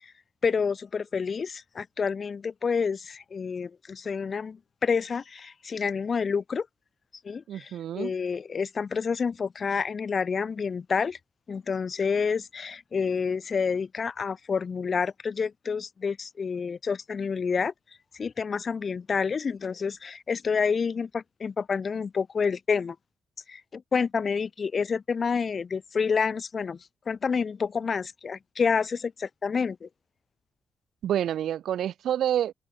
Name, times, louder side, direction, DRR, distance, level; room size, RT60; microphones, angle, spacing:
voice 1, 0.4-6.7 7.2-11.2 11.5-17.7 18.1-22.9 23.5-26.8 27.1-29.9, left 5 dB, 45° left, 3.2 m, -28 dB
voice 2, 7.5-8.1 31.0-32.5, right 10 dB, 80° right, 3.9 m, -28 dB
open air
cardioid pair, 90°, 0 cm